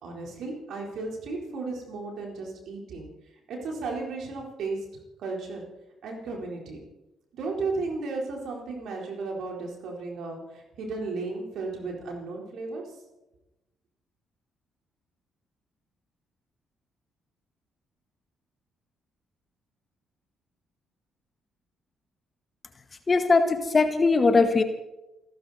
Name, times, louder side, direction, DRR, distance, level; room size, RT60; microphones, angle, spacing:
voice 1, 0.0-3.1 3.5-4.8 5.2-5.6 6.0-6.8 7.3-12.8, right 3 dB, 65° right, 0 dB, 4.2 m, -34 dB
voice 2, 23.1-24.6, left 4 dB, 35° left, 7 dB, 1.8 m, -20 dB
28.5 x 11.5 x 4.3 m, 1.0 s
hypercardioid pair, 45°, 0 cm